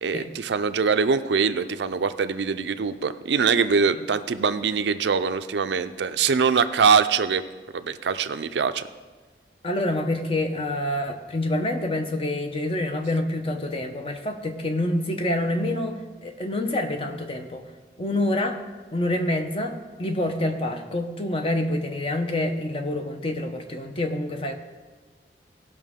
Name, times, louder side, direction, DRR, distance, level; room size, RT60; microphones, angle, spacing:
voice 1, 0.0-7.4 7.7-8.9, right 5 dB, 80° right, 11 dB, 0.5 m, -23 dB
voice 2, 9.6-17.6 18.0-18.6 18.9-24.5, left 1 dB, 30° left, 5 dB, 0.8 m, -27 dB
17.0 x 6.0 x 3.6 m, 1.4 s
head